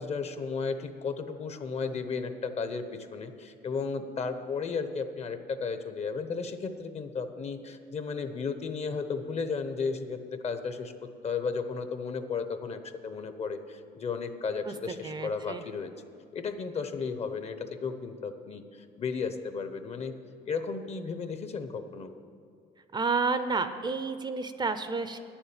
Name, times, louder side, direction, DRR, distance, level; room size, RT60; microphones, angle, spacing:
voice 1, 0.0-10.9 11.2-15.9 16.3-20.1 20.5-22.1, left 5 dB, 40° left, 9 dB, 0.8 m, -34 dB
voice 2, 15.0-15.6 22.9-25.2, right 4 dB, 25° right, 10 dB, 0.6 m, -30 dB
9.5 x 7.2 x 8.8 m, 2.5 s
cardioid pair, 110°, 17 cm